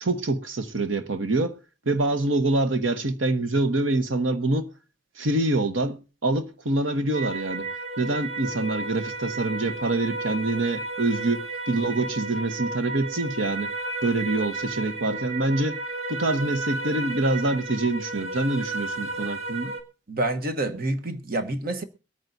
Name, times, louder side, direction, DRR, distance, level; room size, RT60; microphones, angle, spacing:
voice 1, 0.0-1.6 1.8-4.7 5.2-7.7 8.0-13.7 14.0-15.8 16.1-19.7, right 2 dB, 85° right, 1.2 m, -25 dB
sound 1, 7.1-19.8, right 3 dB, 35° right, 1.5 m, -33 dB
voice 2, 20.1-21.8, right 2 dB, 50° right, 1.1 m, -28 dB
23.0 x 9.2 x 2.7 m
head